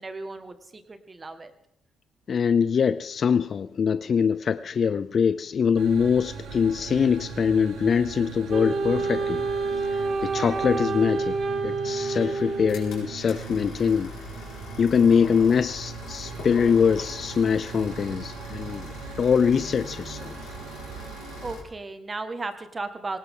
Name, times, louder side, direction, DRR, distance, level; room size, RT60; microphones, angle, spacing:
voice 1, 0.0-1.5 21.4-23.2, right 3 dB, 30° right, 9 dB, 1.7 m, -35 dB
voice 2, 2.3-9.5 9.7-11.4 11.6-14.1 14.8-18.9 19.2-20.4, left 6 dB, 50° left, 14 dB, 0.5 m, -23 dB
sound 1, 5.8-21.6, right 6 dB, 85° right, 2.0 m, -40 dB
Wind instrument woodwind instrument, 8.5-13.1, right 4 dB, 50° right, 1.5 m, -28 dB
sound 2, 11.8-21.6, left 4 dB, 80° left, 4.9 m, -42 dB
18.0 x 18.0 x 3.8 m, 0.79 s
cardioid pair, 90°, 0 cm